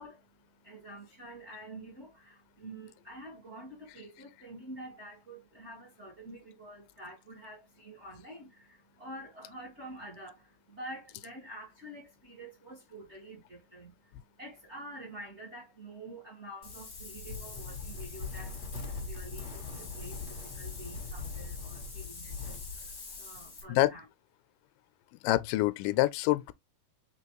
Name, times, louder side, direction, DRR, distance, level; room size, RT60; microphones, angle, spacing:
voice 1, 0.0-18.6 18.9-24.0, right 1 dB, 30° right, 1.3 m, -48 dB
Wind, 16.6-23.6, left 4 dB, 35° left, 1.0 m, -41 dB
voice 2, 25.2-26.5, left 17 dB, 90° left, 2.2 m, -26 dB
5.0 x 3.6 x 2.9 m
omnidirectional pair, 3.8 m